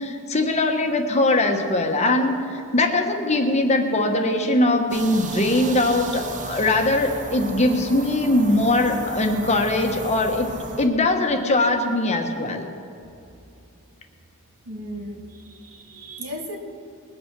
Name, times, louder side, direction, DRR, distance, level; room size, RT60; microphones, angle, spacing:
voice 1, 0.0-10.5 10.8-12.7, left 2 dB, 30° left, 4 dB, 1.2 m, -21 dB
sound 1, 4.9-10.9, right 3 dB, 35° right, 0.9 m, -35 dB
voice 2, 14.7-16.6, equal, 75° right, 2 dB, 1.9 m, -36 dB
21.0 x 8.5 x 6.0 m, 2.6 s
head